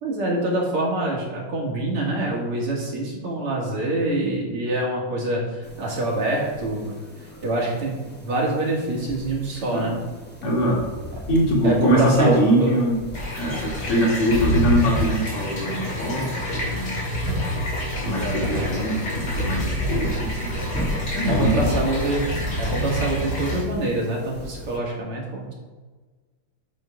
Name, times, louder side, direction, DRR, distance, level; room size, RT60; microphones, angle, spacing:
voice 1, 0.0-6.9 7.4-10.0 11.6-12.8 13.8-14.3 18.0-18.7 21.2-22.3 22.6-25.6, right 1 dB, 75° right, -3 dB, 2.9 m, -25 dB
sound 1, 5.6-24.8, left 1 dB, 15° left, 0.4 m, -36 dB
voice 2, 9.7-10.0 10.4-10.9 11.3-13.0 13.4-16.9 18.0-20.5 21.1-21.7, right 1 dB, 90° left, -3 dB, 2.9 m, -23 dB
sound 2, 13.1-23.6, equal, 50° left, 3.2 m, -27 dB
10.5 x 5.7 x 3.8 m, 1.4 s
omnidirectional pair, 2.4 m